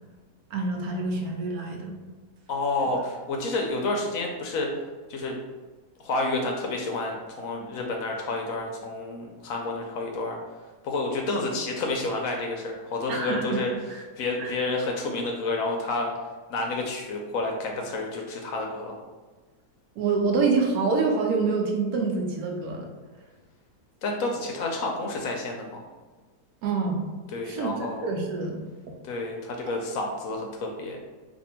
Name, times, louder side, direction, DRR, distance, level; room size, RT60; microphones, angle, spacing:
voice 1, 0.5-1.9 13.1-13.6 13.9-14.0 14.4-14.5 20.0-22.9 26.6-27.0 27.4-27.7 28.0-28.6, right 4 dB, 75° right, 1 dB, 1.1 m, -26 dB
voice 2, 2.5-4.7 5.1-5.4 6.0-10.4 10.8-13.7 14.2-16.1 16.5-18.9 24.0-25.8 27.3-28.1 29.0-31.0, left 2 dB, 70° left, 1 dB, 0.9 m, -29 dB
2.7 x 2.6 x 4.3 m, 1.3 s
omnidirectional pair, 1.7 m